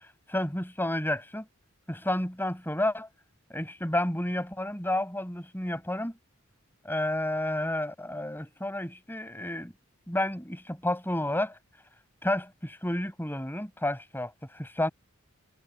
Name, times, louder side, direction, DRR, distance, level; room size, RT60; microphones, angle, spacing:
voice 1, 0.3-1.5 1.9-3.1 3.5-6.1 6.8-9.7 10.1-11.5 12.2-14.9, left 1 dB, 10° left, 7.5 m, -31 dB
head